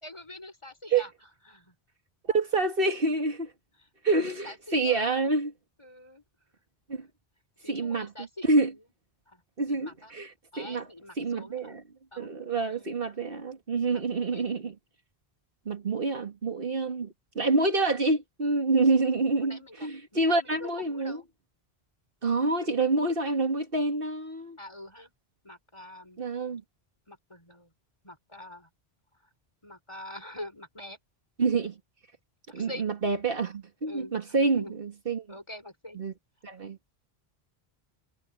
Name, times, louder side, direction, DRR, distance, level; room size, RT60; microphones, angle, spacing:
voice 1, 0.0-1.1 1.5-1.7 3.8-5.3 5.8-6.2 7.6-8.5 9.3-9.4 9.7-10.1 10.5-11.8 12.1-12.9 13.9-14.5 19.4-21.2 22.6-22.7 24.6-25.1 25.4-26.2 27.1-27.7 28.0-28.7 29.6-31.0 32.5-32.9 33.8-34.8 35.3-36.0, left 1 dB, 30° left, 5.4 m, -45 dB
voice 2, 2.3-3.5 4.0-5.5 6.9-7.1 7.7-8.1 8.4-8.7 9.6-10.9 11.2-11.8 12.2-14.7 15.7-21.2 22.2-24.6 26.2-26.6 31.4-31.7 32.5-35.3 36.0-36.1 36.4-36.8, right 3 dB, 65° right, 2.1 m, -27 dB
omnidirectional pair, 1.0 m